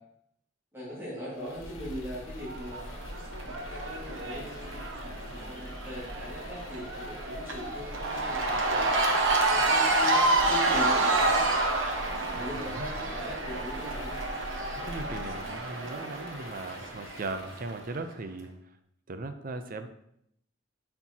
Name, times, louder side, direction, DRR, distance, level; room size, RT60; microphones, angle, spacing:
voice 1, 0.7-3.1 3.5-8.8 9.5-11.5 12.3-14.2, equal, 10° right, -10 dB, 2.0 m, -40 dB
sound 1, 1.3-18.0, left 1 dB, 80° left, 1.3 m, -44 dB
Cheering / Crowd, 2.4-17.7, right 2 dB, 75° right, 0.9 m, -29 dB
voice 2, 12.4-12.9 14.6-18.5 19.1-19.9, right 3 dB, 45° right, 8 dB, 0.5 m, -38 dB
9.7 x 4.4 x 2.8 m, 0.75 s
head